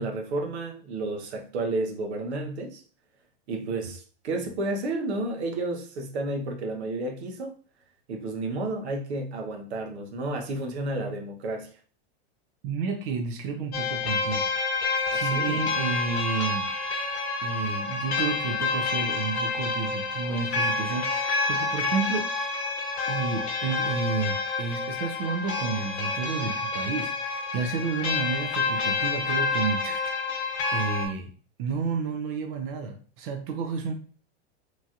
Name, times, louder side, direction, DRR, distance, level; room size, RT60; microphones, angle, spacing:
voice 1, 0.0-2.8 3.5-7.5 8.1-11.7 15.1-15.7, right 2 dB, 85° right, 0.8 m, -31 dB
voice 2, 12.6-14.4 15.1-16.7 17.4-22.5 23.1-31.3 31.6-33.9, right 5 dB, 55° right, 0.6 m, -31 dB
sound 1, 13.7-31.1, left 4 dB, 80° left, 1.0 m, -28 dB
3.0 x 2.7 x 2.3 m
supercardioid pair, 135°, 32 cm